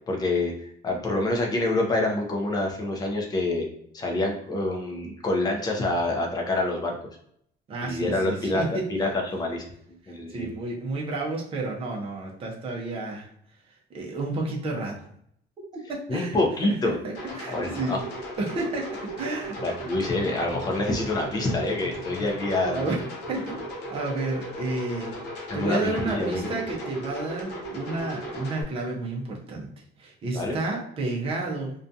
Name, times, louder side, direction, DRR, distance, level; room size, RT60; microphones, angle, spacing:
voice 1, 0.1-0.5 0.8-3.7 3.9-7.0 7.8-9.6 10.1-10.5 16.1-17.0 17.5-18.0 19.6-22.9 25.5-26.6 30.3-30.6, left 2 dB, 20° left, 1 dB, 0.5 m, -26 dB
voice 2, 7.7-8.8 10.0-13.3 13.9-15.0 15.9-18.0 18.4-18.9 19.2-19.6 22.7-23.0 23.3-25.1 25.5-29.7 30.0-31.7, right 2 dB, 30° right, -1 dB, 0.5 m, -31 dB
sound 1, 17.1-28.6, right 1 dB, 70° left, 0.7 m, -36 dB
2.4 x 2.2 x 2.6 m, 0.69 s
cardioid pair, 165°, 18 cm